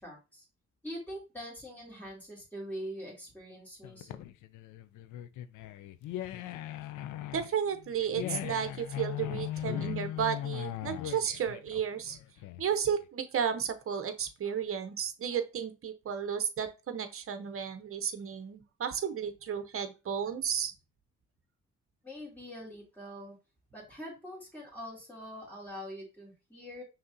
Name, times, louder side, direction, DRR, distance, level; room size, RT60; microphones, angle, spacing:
voice 1, 0.0-0.4 0.8-4.2 22.0-23.4 23.7-26.8, equal, 5° left, -4 dB, 2.9 m, -43 dB
sound 1, 3.8-12.9, left 12 dB, 85° left, 0.5 m, -39 dB
voice 2, 7.3-12.2 12.6-20.7, right 8 dB, 45° right, 9 dB, 0.9 m, -33 dB
5.8 x 3.3 x 2.7 m, 0.29 s
cardioid pair, 90°, 30 cm